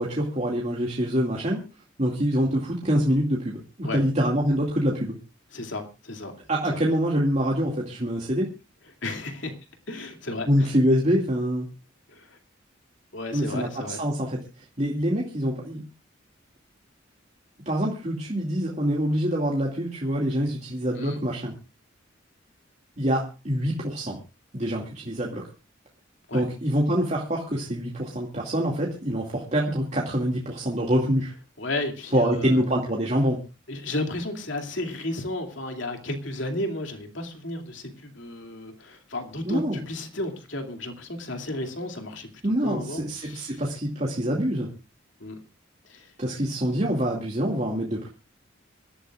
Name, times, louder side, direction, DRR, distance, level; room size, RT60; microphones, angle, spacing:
voice 1, 0.0-1.6 2.0-5.2 6.5-8.5 10.5-11.7 13.3-14.4 14.8-15.8 17.7-21.5 23.0-24.2 24.5-25.4 26.3-31.3 32.1-33.4 39.4-39.8 42.4-44.7 46.2-48.1, equal, 35° right, -2 dB, 2.3 m, -25 dB
voice 2, 5.5-6.3 6.7-6.8 9.0-9.5 9.9-10.8 12.1-12.4 13.1-14.0 21.0-21.2 26.3-26.4 31.6-32.6 33.7-42.3 42.6-43.6 45.2-45.4 45.9-46.1, left 2 dB, 70° left, 5 dB, 2.7 m, -33 dB
26.0 x 12.5 x 2.5 m, 0.30 s
head